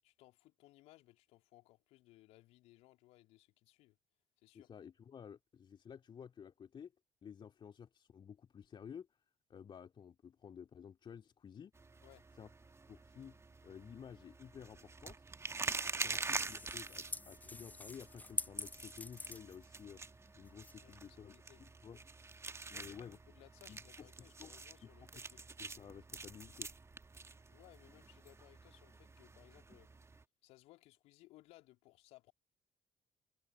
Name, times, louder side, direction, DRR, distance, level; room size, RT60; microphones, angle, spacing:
voice 1, 0.0-4.0 4.4-4.7 12.0-12.3 16.1-16.3 20.8-21.6 22.7-25.5 27.3-29.9 30.4-32.3, left 18 dB, 60° left, 3.5 m, -63 dB
voice 2, 4.5-6.9 7.2-9.1 9.5-11.7 12.4-12.5 12.9-13.4 13.6-15.2 15.9-20.0 20.4-21.3 21.6-22.0 22.7-23.2 23.7-24.5 24.8-24.9 25.6-26.7, left 7 dB, 40° left, 2.6 m, -53 dB
sound 1, 11.8-30.2, right 3 dB, 25° right, 2.0 m, -46 dB
sound 2, 15.8-20.9, left 2 dB, 15° left, 0.8 m, -46 dB
figure-of-eight pair, 45°, 12 cm